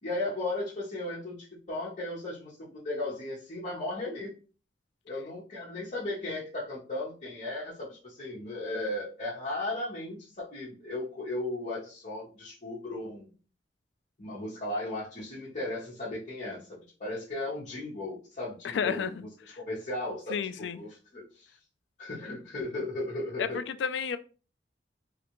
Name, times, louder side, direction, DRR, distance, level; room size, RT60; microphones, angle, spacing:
voice 1, 0.0-4.3 5.0-13.3 14.2-21.6 22.0-23.6, left 2 dB, 45° left, 1.0 m, -36 dB
voice 2, 18.6-19.2 20.3-20.8 23.5-24.2, left 7 dB, 70° left, 0.3 m, -31 dB
3.2 x 2.4 x 2.9 m
head